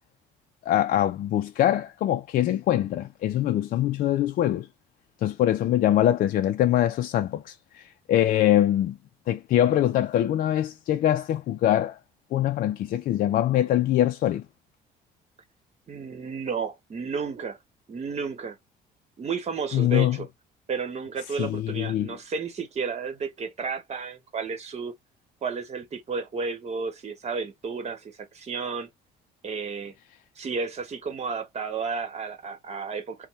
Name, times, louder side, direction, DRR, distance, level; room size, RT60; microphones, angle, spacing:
voice 1, 0.7-4.7 5.2-9.0 9.3-12.0 12.3-14.4 19.7-20.2 21.4-22.1, left 12 dB, 55° left, 0.4 m, -23 dB
voice 2, 15.9-17.6 17.9-18.6 19.2-20.3 20.7-24.9 25.4-28.9 29.4-29.9 30.4-33.3, right 5 dB, 40° right, 1.1 m, -32 dB
2.6 x 2.2 x 3.0 m
cardioid pair, 110°, 17 cm